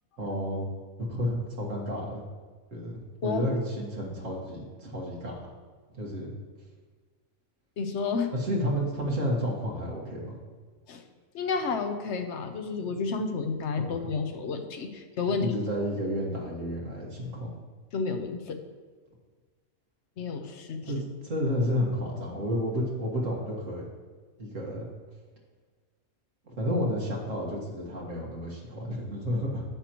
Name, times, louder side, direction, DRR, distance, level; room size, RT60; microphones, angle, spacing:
voice 1, 0.2-0.7 1.0-2.2 2.7-5.5 5.9-6.3 8.3-10.4 13.8-14.1 15.4-17.5 20.8-23.9 24.4-24.9 26.5-29.6, equal, 60° right, -3 dB, 2.0 m, -31 dB
voice 2, 7.8-8.3 10.9-11.0 11.3-15.5 17.9-18.6 20.2-21.0, left 4 dB, 60° left, 6 dB, 1.0 m, -31 dB
10.0 x 7.4 x 3.0 m, 1.5 s
omnidirectional pair, 1.5 m